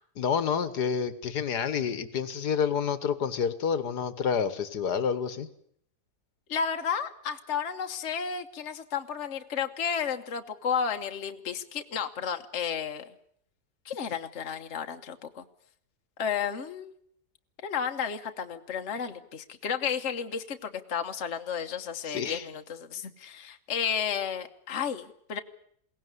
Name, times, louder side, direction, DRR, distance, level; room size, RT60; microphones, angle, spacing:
voice 1, 0.2-5.5 22.1-22.5, left 7 dB, 85° left, 13 dB, 2.0 m, -29 dB
voice 2, 6.5-13.1 13.8-15.4 16.2-17.0 17.6-25.4, left 7 dB, 50° left, 6 dB, 1.4 m, -32 dB
22.0 x 17.5 x 9.7 m, 0.67 s
omnidirectional pair, 1.7 m